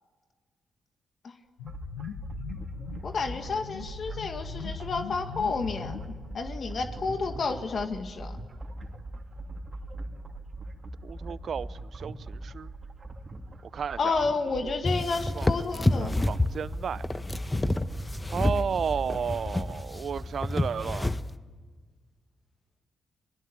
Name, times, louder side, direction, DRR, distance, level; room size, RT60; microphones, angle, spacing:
sound 1, 1.6-6.6, left 6 dB, 85° left, 1.2 m, -40 dB
sound 2, 1.6-19.4, right 1 dB, 45° right, 3.0 m, -41 dB
voice 1, 3.0-8.4 14.0-16.2, left 4 dB, 55° left, 2.1 m, -31 dB
voice 2, 11.0-12.7 13.7-14.7 15.3-17.0 18.3-21.2, right 7 dB, 60° right, 0.7 m, -33 dB
sound 3, 14.8-21.4, left 1 dB, 20° left, 1.3 m, -29 dB
29.5 x 20.5 x 8.8 m
hypercardioid pair, 40°, 0 cm